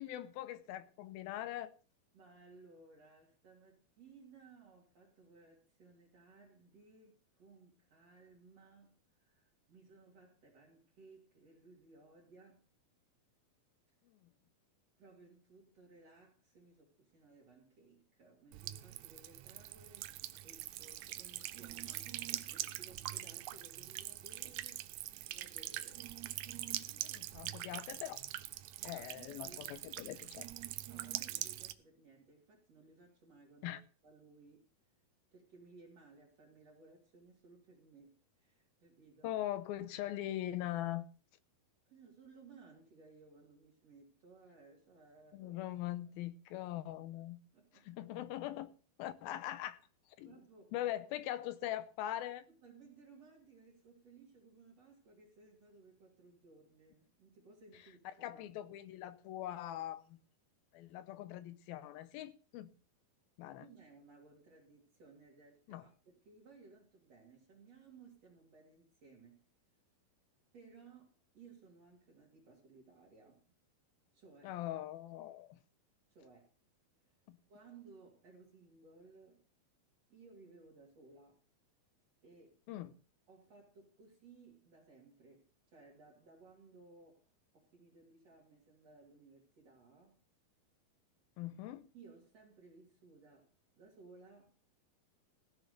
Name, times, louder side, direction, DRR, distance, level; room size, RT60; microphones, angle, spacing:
voice 1, 0.0-1.8 14.1-14.2 26.9-28.2 28.8-30.5 33.6-33.8 39.2-41.1 45.3-47.4 47.9-48.7 49.0-49.8 50.2-50.4 50.7-52.5 58.2-60.2 60.7-62.7 63.4-63.7 65.7-65.8 74.4-75.6 77.3-77.4 82.7-82.9 91.4-91.9, left 13 dB, 85° left, 2.7 m, -42 dB
voice 2, 2.1-12.7 15.0-24.9 25.3-26.1 28.9-29.9 30.9-34.7 35.3-39.3 41.9-45.6 47.5-48.0 50.2-50.7 52.5-58.6 63.6-69.4 70.5-73.5 74.1-74.6 76.1-76.5 77.5-79.4 80.1-81.4 82.2-82.6 83.3-90.2 91.9-93.5 93.8-94.6, right 4 dB, 45° right, 3.6 m, -60 dB
Buzz / Water tap faucet / Trickle dribble, 18.5-31.7, right 14 dB, 85° right, 1.6 m, -43 dB
16.0 x 6.7 x 6.6 m
omnidirectional pair, 4.2 m